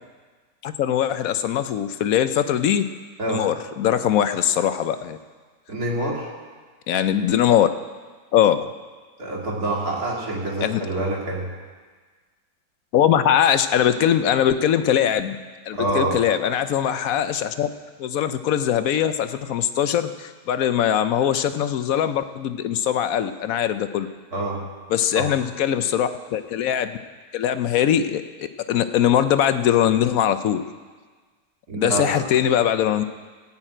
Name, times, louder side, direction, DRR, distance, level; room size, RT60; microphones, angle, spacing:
voice 1, 0.6-2.9 3.3-5.2 6.9-7.7 8.3-8.7 10.6-10.8 12.9-15.4 15.7-17.7 18.0-24.1 24.9-27.0 27.3-30.6 31.7-33.0, left 10 dB, 65° left, 11 dB, 0.9 m, -21 dB
voice 2, 5.7-6.3 9.2-11.6 15.7-16.2 24.3-24.6 25.1-25.3 31.7-32.2, right 1 dB, 60° right, -3 dB, 2.9 m, -26 dB
17.0 x 5.8 x 8.8 m, 1.4 s
omnidirectional pair, 1.8 m